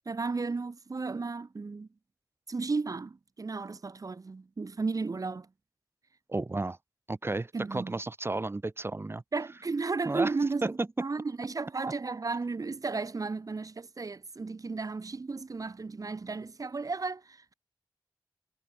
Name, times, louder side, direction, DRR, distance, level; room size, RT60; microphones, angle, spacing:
voice 1, 0.0-1.9 2.5-5.5 7.5-8.0 9.3-17.5, right 4 dB, 45° right, 1.3 m, -34 dB
voice 2, 6.3-6.8 7.1-9.2 10.0-10.3 10.6-10.9, right 2 dB, 30° right, 1.3 m, -32 dB
cardioid pair, 60°, 8 cm